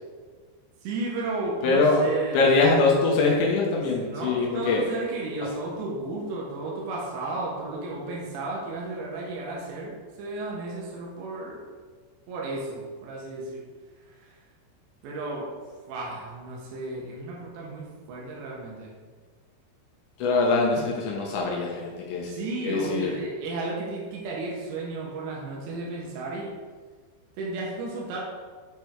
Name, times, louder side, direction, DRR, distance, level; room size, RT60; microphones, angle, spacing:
voice 1, 0.8-2.4 3.7-11.6 12.3-13.6 14.1-14.4 15.0-15.5 15.9-18.9 22.3-26.5 27.3-28.2, right 3 dB, 85° right, -4 dB, 3.5 m, -33 dB
voice 2, 1.6-2.1 2.3-4.8 20.2-22.3 22.6-23.1, left 3 dB, 85° left, -2 dB, 1.7 m, -23 dB
8.9 x 4.5 x 4.6 m, 1.5 s
omnidirectional pair, 5.0 m